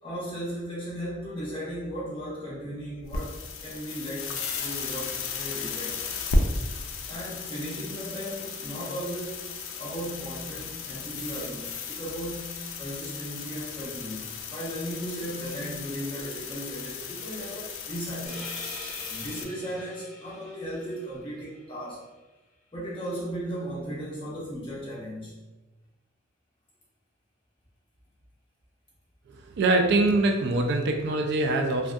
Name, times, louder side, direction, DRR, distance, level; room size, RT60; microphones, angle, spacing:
voice 1, 0.0-6.0 7.1-9.4 9.8-18.5 19.0-22.0 22.7-25.4, equal, 25° left, -8 dB, 0.9 m, -36 dB
sound 1, 3.0-19.4, left 3 dB, 80° left, 0.3 m, -34 dB
sound 2, 18.3-21.7, equal, 5° right, 0.7 m, -44 dB
voice 2, 29.4-31.9, right 2 dB, 60° right, 4 dB, 0.3 m, -23 dB
2.5 x 2.2 x 2.2 m, 1.1 s
head